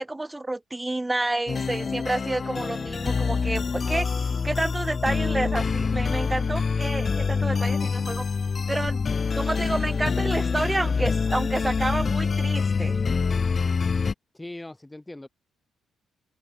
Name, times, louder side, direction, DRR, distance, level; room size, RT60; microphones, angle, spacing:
voice 1, 0.0-4.1 4.4-8.3 8.7-9.0 9.3-13.0, right 2 dB, 15° right, 0.9 m, -29 dB
sound 1, 1.5-14.1, left 5 dB, 35° left, 0.5 m, -26 dB
voice 2, 14.3-15.3, left 1 dB, 10° left, 1.4 m, -40 dB
open air
cardioid pair, 90°, 0 cm